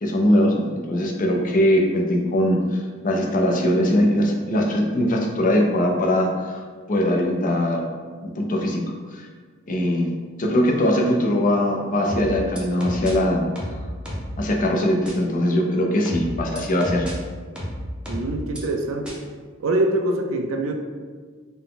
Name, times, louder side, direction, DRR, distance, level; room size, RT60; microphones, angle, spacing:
voice 1, 0.0-6.6 6.9-7.8 8.2-8.8 9.1-9.3 9.7-10.1 10.4-13.4 14.4-17.1, left 1 dB, 40° left, 0 dB, 0.5 m, -21 dB
sound 1, 12.1-13.1 13.6-14.4 15.1-15.2 16.1-17.1 17.6-18.6 19.1-19.2, equal, 5° right, 0.7 m, -31 dB
voice 2, 18.1-19.2 19.6-20.7, right 2 dB, 75° right, 5 dB, 0.4 m, -24 dB
3.9 x 2.2 x 3.8 m, 1.5 s
head